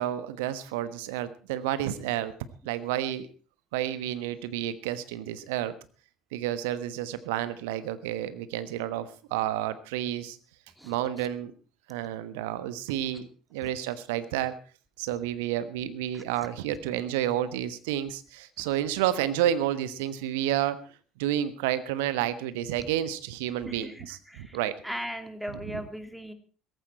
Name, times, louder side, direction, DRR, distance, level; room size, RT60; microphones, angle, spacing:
voice 1, 0.0-2.3 2.6-3.3 3.7-5.7 6.3-10.4 10.8-11.5 11.9-14.5 15.0-20.8 21.2-24.7 25.5-25.9, right 12 dB, 65° right, 14 dB, 1.2 m, -30 dB
voice 2, 16.1-16.5 23.7-24.6 24.8-26.3, equal, ahead, 8 dB, 2.4 m, -38 dB
17.0 x 15.0 x 4.3 m, 0.38 s
figure-of-eight pair, 60°, 0 cm